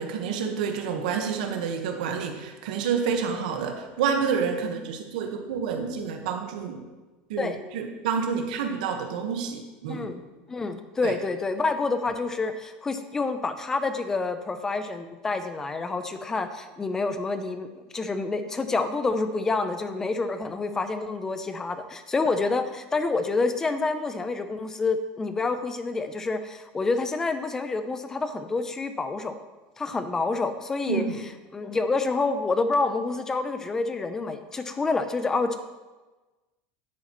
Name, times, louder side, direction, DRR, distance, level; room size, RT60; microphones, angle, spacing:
voice 1, 0.0-6.8 7.3-10.1 11.0-11.1 30.9-31.2, right 6 dB, 85° right, 4 dB, 1.3 m, -29 dB
voice 2, 9.9-10.2 10.5-29.4 29.8-31.0 31.5-35.6, left 3 dB, 10° left, 9 dB, 0.5 m, -28 dB
10.5 x 8.3 x 3.1 m, 1.2 s
cardioid pair, 165°, 4 cm